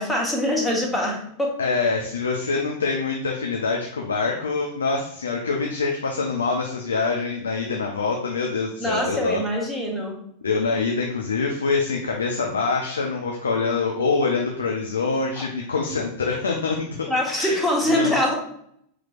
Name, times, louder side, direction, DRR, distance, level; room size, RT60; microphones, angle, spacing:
voice 1, 0.0-1.6 8.8-10.2 17.1-18.3, left 1 dB, 5° left, -2 dB, 1.1 m, -24 dB
voice 2, 1.6-9.4 10.4-17.1 17.4-17.6 17.9-18.1, left 4 dB, 70° left, 1 dB, 0.5 m, -25 dB
5.8 x 3.0 x 2.4 m, 0.69 s
figure-of-eight pair, 90°, 0 cm